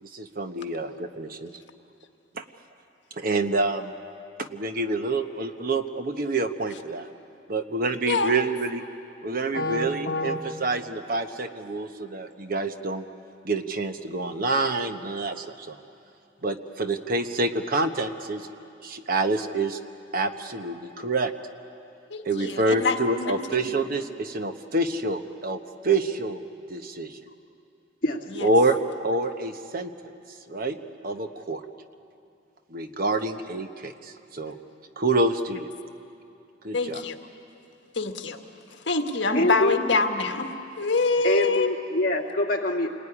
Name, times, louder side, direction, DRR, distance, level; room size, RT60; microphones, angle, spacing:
voice 1, 0.0-1.5 2.3-2.4 3.2-3.9 4.4-7.1 7.5-8.8 9.2-13.0 13.4-15.8 16.4-18.5 18.8-19.8 20.1-21.3 22.2-26.4 26.7-27.2 28.4-28.8 29.0-29.9 30.5-30.8 31.0-31.6 32.7-34.5 35.0-35.7 36.6-37.0, right 2 dB, 50° right, 8 dB, 1.1 m, -27 dB
voice 2, 9.5-10.4 28.0-28.2 39.3-39.8 41.2-42.9, left 1 dB, 50° left, 0 dB, 2.2 m, -25 dB
voice 3, 22.1-23.4 23.7-23.8 28.4-28.5 36.7-37.1 37.9-38.4 38.9-40.5 40.8-41.7, left 3 dB, 65° left, 5 dB, 1.6 m, -25 dB
28.5 x 20.5 x 10.0 m, 2.7 s
head